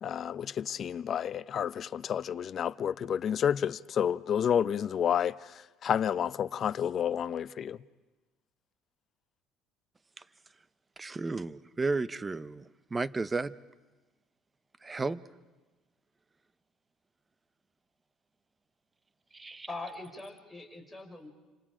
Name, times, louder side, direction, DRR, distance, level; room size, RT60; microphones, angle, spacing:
voice 1, 0.0-7.8, left 8 dB, 45° left, 0.6 m, -30 dB
voice 2, 11.0-12.7 12.9-13.5 14.8-15.2 19.3-19.7, right 3 dB, 20° right, 0.7 m, -33 dB
voice 3, 19.7-21.3, left 2 dB, ahead, 4.9 m, -42 dB
29.0 x 26.0 x 5.0 m
cardioid pair, 110°, 0 cm